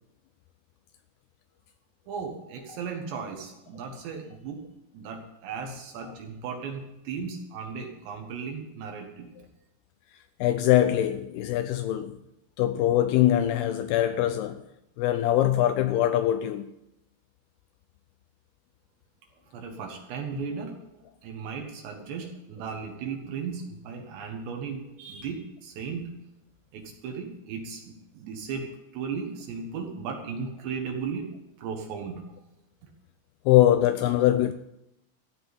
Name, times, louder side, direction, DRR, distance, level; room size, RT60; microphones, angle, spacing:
voice 1, 2.1-4.6 4.9-9.3 19.5-26.1 26.7-31.3 31.6-32.3, right 6 dB, 75° right, 3.6 m, -36 dB
voice 2, 10.4-12.2 12.6-14.6 15.0-16.7 33.5-34.5, left 13 dB, 85° left, 2.3 m, -23 dB
14.5 x 6.2 x 9.6 m
omnidirectional pair, 5.1 m